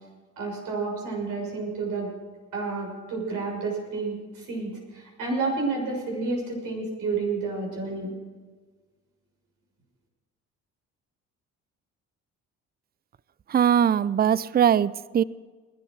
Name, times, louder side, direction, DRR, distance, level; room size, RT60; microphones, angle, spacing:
voice 1, 0.4-2.1 2.5-8.1, right 3 dB, 70° right, 0 dB, 6.6 m, -30 dB
voice 2, 13.5-15.2, right 9 dB, 30° right, 20 dB, 0.5 m, -21 dB
20.0 x 13.0 x 4.7 m, 1.4 s
supercardioid pair, 65°, 33 cm